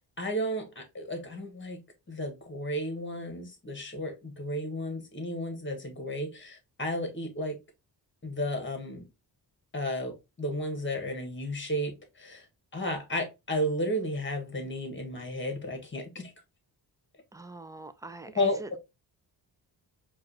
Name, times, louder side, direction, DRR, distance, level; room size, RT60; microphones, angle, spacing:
voice 1, 0.0-1.8 2.1-7.6 8.2-9.0 9.7-12.4 12.7-16.3 18.3-18.8, equal, 25° left, 1.4 m, -33 dB
voice 2, 17.3-18.8, right 2 dB, 10° right, 0.4 m, -43 dB
4.8 x 2.6 x 3.0 m
cardioid pair, 100°, 42 cm